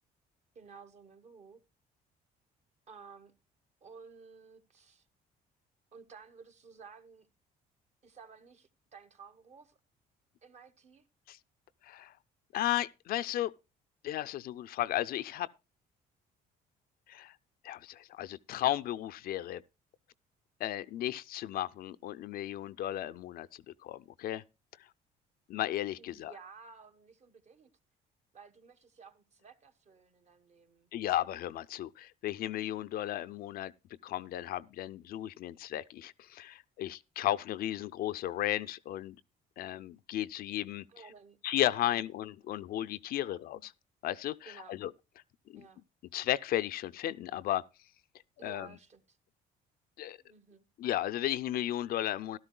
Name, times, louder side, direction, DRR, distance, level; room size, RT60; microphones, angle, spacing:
voice 1, 0.5-1.6 2.9-3.3 3.8-5.1 5.9-7.3 8.0-9.8 10.4-11.0 26.0-27.7 28.3-30.9 40.9-41.4 41.8-42.0 43.1-43.4 44.4-44.8 45.5-45.8 48.4-49.2 50.2-50.6, right 5 dB, 40° right, 1.2 m, -54 dB
voice 2, 12.5-13.5 14.0-15.5 17.1-17.3 17.6-19.6 20.6-24.4 25.5-26.3 30.9-33.7 34.0-39.2 39.6-40.8 41.4-43.7 44.0-44.9 45.5-45.6 46.1-47.6 48.4-48.7 50.0-50.2 50.8-52.4, left 13 dB, 65° left, 0.4 m, -34 dB
13.5 x 12.5 x 2.2 m
cardioid pair, 110°, 17 cm